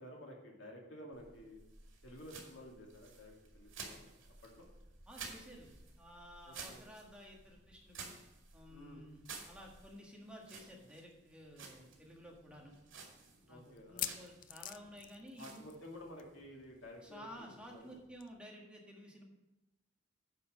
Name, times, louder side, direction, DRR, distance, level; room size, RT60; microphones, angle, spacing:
voice 1, 0.0-1.6 2.0-4.1 4.4-4.7 6.5-6.8 8.7-9.0 13.5-14.1 15.4-18.0, left 1 dB, 80° left, -1 dB, 2.3 m, -52 dB
sound 1, 1.1-18.4, right 5 dB, 85° right, 2.4 m, -54 dB
voice 2, 5.1-5.7 6.0-8.1 8.5-12.7 13.5-15.7 17.0-19.2, equal, 5° right, -1 dB, 1.6 m, -53 dB
sound 2, 11.1-11.2 11.5-11.6 12.2-12.3 13.8-15.9 16.2-16.4 16.6-16.7 18.2-18.3, left 12 dB, 45° left, 0.4 m, -44 dB
9.6 x 5.7 x 6.3 m, 0.96 s
head